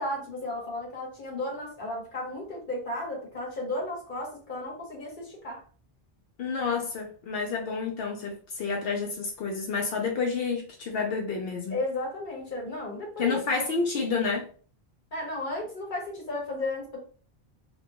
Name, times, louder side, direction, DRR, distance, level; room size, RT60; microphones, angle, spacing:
voice 1, 0.0-5.6 11.7-13.3 15.1-17.0, left 2 dB, 55° left, 1.2 m, -34 dB
voice 2, 6.4-11.8 13.2-14.5, left 4 dB, 70° left, 0.8 m, -29 dB
2.5 x 2.2 x 2.8 m
omnidirectional pair, 1.0 m